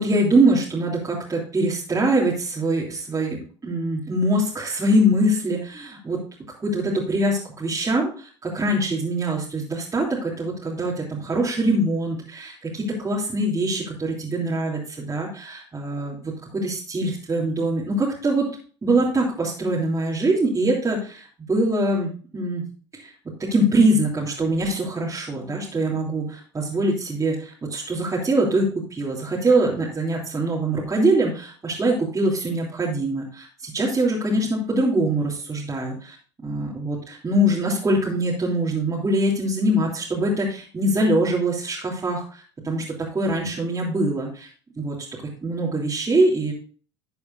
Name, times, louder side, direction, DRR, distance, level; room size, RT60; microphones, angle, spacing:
voice 1, 0.0-6.2 6.6-18.5 18.8-22.6 22.9-23.1 23.4-36.1 36.4-42.8 43.1-44.5 44.8-45.0 45.4-46.5, right 1 dB, 20° right, -5 dB, 3.3 m, -23 dB
13.0 x 8.2 x 2.7 m, 0.40 s
hypercardioid pair, 75°, 15 cm